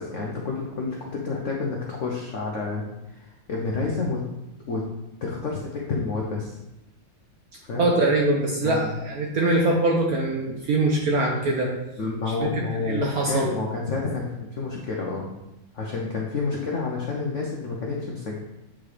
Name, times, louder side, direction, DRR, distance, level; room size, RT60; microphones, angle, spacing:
voice 1, 0.0-4.2 4.7-4.8 5.2-6.6 7.7-7.9 8.6-8.9 12.0-15.3 15.7-18.4, left 4 dB, 70° left, -2 dB, 0.7 m, -29 dB
voice 2, 7.7-11.7 12.3-13.5, right 2 dB, 65° right, 0 dB, 0.9 m, -23 dB
8.5 x 3.8 x 3.3 m, 0.95 s
omnidirectional pair, 2.3 m